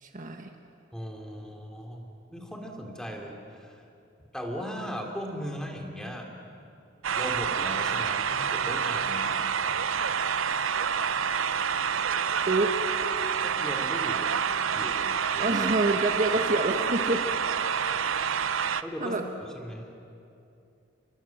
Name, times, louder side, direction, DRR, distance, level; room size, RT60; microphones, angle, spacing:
voice 1, 0.0-0.5 12.5-12.7 15.4-17.3 18.7-19.2, right 2 dB, 40° right, 4 dB, 1.4 m, -27 dB
voice 2, 0.9-3.8 4.3-6.3 7.2-9.4 13.4-14.3 14.7-15.6 18.8-19.9, equal, 5° left, 1 dB, 3.2 m, -38 dB
sound 1, 7.0-18.8, right 7 dB, 80° right, 0.7 m, -28 dB
29.5 x 23.0 x 7.3 m, 2.6 s
head